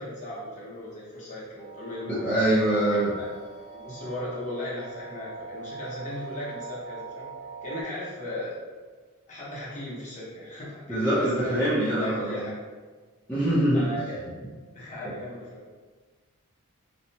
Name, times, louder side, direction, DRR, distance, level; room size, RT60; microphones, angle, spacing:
voice 1, 0.0-3.3 3.7-7.3 7.6-8.6 9.3-11.6 12.0-12.6 13.7-14.2 14.7-15.6, left 1 dB, 35° left, -8 dB, 0.8 m, -37 dB
sound 1, 1.6-7.8, right 4 dB, 45° right, 0.9 m, -42 dB
voice 2, 2.1-3.1 10.9-12.4 13.3-13.9, right 1 dB, 5° left, -11 dB, 0.5 m, -24 dB
2.7 x 2.1 x 2.7 m, 1.4 s
head